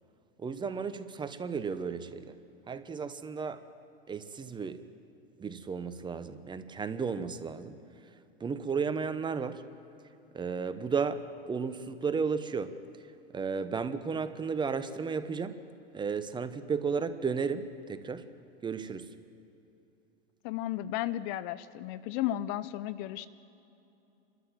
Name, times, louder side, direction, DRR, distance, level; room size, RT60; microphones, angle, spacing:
voice 1, 0.4-2.4 2.7-3.6 4.1-4.8 5.4-7.8 8.4-9.6 10.3-12.7 13.3-15.6 15.9-18.2 18.6-19.1, right 5 dB, 15° right, 11 dB, 0.9 m, -33 dB
voice 2, 20.4-23.3, left 13 dB, 45° left, 16 dB, 0.6 m, -34 dB
29.0 x 13.0 x 7.4 m, 2.9 s
hypercardioid pair, 115°, 30 cm